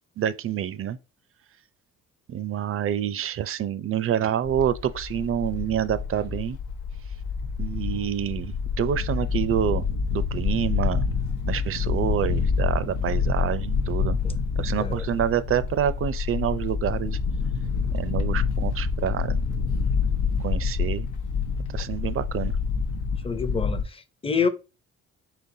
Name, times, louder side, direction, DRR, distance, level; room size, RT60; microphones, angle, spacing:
voice 1, 0.2-1.0 2.3-6.6 7.6-9.8 10.1-11.0 11.5-14.2 14.6-17.2 17.9-19.3 20.4-21.1 21.7-22.6, right 9 dB, 45° right, 0.4 m, -27 dB
sound 1, 4.4-23.8, left 5 dB, 85° left, 0.8 m, -27 dB
voice 2, 23.2-24.5, left 5 dB, 20° left, 0.6 m, -27 dB
4.3 x 4.0 x 2.7 m
cardioid pair, 90°, 30 cm